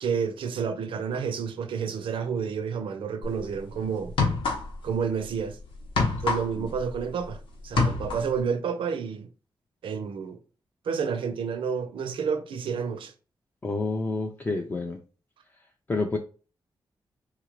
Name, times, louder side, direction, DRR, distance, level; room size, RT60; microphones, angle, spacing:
voice 1, 0.0-4.1 4.8-5.6 6.2-9.3 9.8-10.4 10.9-13.1, right 6 dB, 80° right, 0.4 m, -30 dB
sound 1, 3.2-3.4 4.0-4.9 5.2-7.3 7.6-8.4, left 3 dB, 90° left, 1.0 m, -26 dB
voice 2, 13.6-15.0 15.9-16.2, left 3 dB, 20° left, 0.3 m, -29 dB
3.7 x 2.4 x 2.9 m
wide cardioid pair, 145°, 9 cm